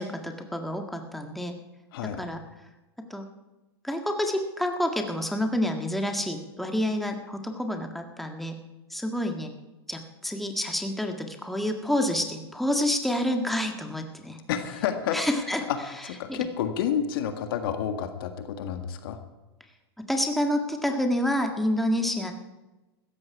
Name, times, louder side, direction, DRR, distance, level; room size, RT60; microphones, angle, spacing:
voice 1, 0.0-1.5 2.0-2.4 3.1-3.3 3.8-8.6 8.9-9.5 9.9-14.4 15.1-15.6 16.3-16.5 20.1-22.3, left 1 dB, ahead, 4 dB, 1.7 m, -28 dB
voice 2, 14.5-15.2 15.7-15.8 16.0-19.2, left 9 dB, 65° left, 7 dB, 1.8 m, -29 dB
16.0 x 14.0 x 4.8 m, 1.1 s
hypercardioid pair, 110°, 13 cm